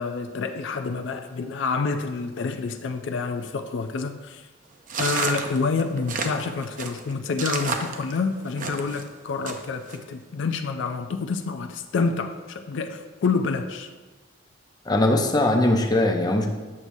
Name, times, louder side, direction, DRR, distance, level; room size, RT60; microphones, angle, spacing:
voice 1, 0.0-4.5 5.0-13.9, left 4 dB, 70° left, 7 dB, 0.4 m, -28 dB
sound 1, 4.9-9.0 9.5-10.0, right 4 dB, 45° right, 0.6 m, -30 dB
voice 2, 14.9-16.5, left 1 dB, 20° left, 3 dB, 0.6 m, -20 dB
8.5 x 6.1 x 2.7 m, 1.3 s
head